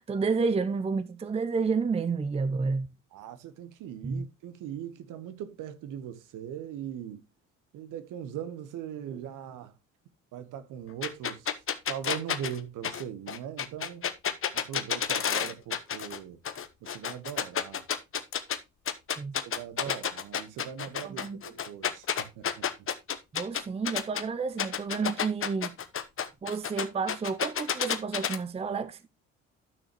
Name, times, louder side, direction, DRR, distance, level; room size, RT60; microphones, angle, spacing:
voice 1, 0.0-2.9 4.0-4.2 19.2-19.4 21.0-21.4 23.3-25.7 26.4-29.0, right 4 dB, 15° right, 0.6 m, -30 dB
voice 2, 3.1-7.2 7.7-9.7 10.3-11.6 11.9-14.1 14.5-16.4 16.8-17.9 19.4-22.9, right 9 dB, 55° right, 1.1 m, -40 dB
sound 1, 11.0-16.2 16.4-18.6 18.9-24.2 24.6-28.4, left 8 dB, 35° left, 1.0 m, -30 dB
12.0 x 6.4 x 3.0 m
figure-of-eight pair, 50°, 37 cm